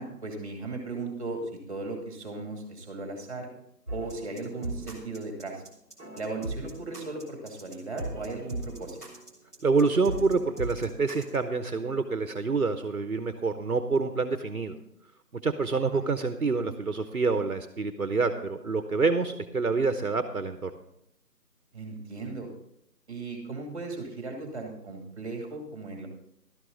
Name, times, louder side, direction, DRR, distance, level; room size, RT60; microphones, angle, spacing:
voice 1, 0.0-3.5 3.9-5.6 6.2-9.0 15.9-16.0 21.7-22.5 23.1-26.1, right 3 dB, 20° right, 3 dB, 2.5 m, -37 dB
sound 1, 3.9-11.4, right 1 dB, 10° left, 1.3 m, -38 dB
voice 2, 9.6-14.8 15.4-20.7, right 4 dB, 60° right, 9 dB, 1.1 m, -27 dB
12.5 x 12.5 x 4.0 m, 0.75 s
figure-of-eight pair, 165°, 48 cm